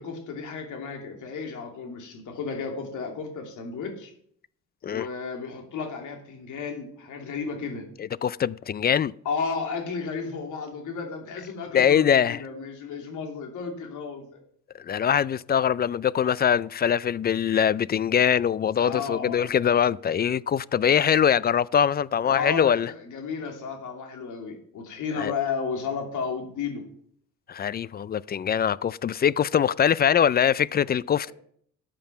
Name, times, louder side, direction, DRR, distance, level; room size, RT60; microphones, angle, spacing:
voice 1, 0.0-4.1 4.9-7.9 9.2-14.4 18.8-19.4 22.2-26.8, left 5 dB, 75° left, 2.7 m, -33 dB
voice 2, 8.0-9.1 11.7-12.4 14.7-22.9 25.1-25.3 27.5-31.3, left 8 dB, 35° left, 0.4 m, -23 dB
12.5 x 7.7 x 5.8 m
cardioid pair, 90°, 30 cm